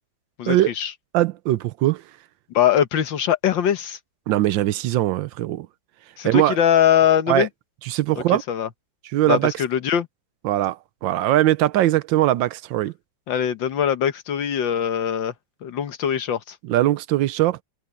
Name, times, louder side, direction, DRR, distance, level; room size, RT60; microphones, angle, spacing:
voice 1, 0.4-0.9 2.5-4.0 6.2-7.5 8.5-8.7 9.3-10.1 13.3-15.3 15.6-16.6, left 9 dB, 75° left, 1.9 m, -21 dB
voice 2, 1.1-2.0 4.3-5.7 6.2-6.6 7.3-7.5 7.8-8.4 9.1-9.5 10.4-12.9 16.6-17.6, right 14 dB, 85° right, 1.4 m, -21 dB
omnidirectional pair, 2.1 m